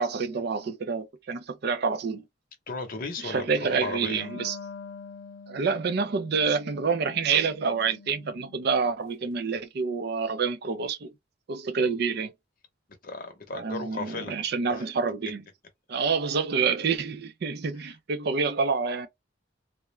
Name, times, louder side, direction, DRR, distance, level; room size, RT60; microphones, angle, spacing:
voice 1, 0.0-2.2 3.2-4.6 5.5-11.1 11.5-12.3 13.5-15.4 15.9-19.1, right 5 dB, 55° right, 0.4 m, -27 dB
voice 2, 2.7-4.3 13.0-14.4 14.7-14.8, left 3 dB, 45° left, 0.8 m, -35 dB
Wind instrument woodwind instrument, 4.0-9.0, left 5 dB, 85° left, 0.4 m, -46 dB
2.3 x 2.1 x 3.1 m
head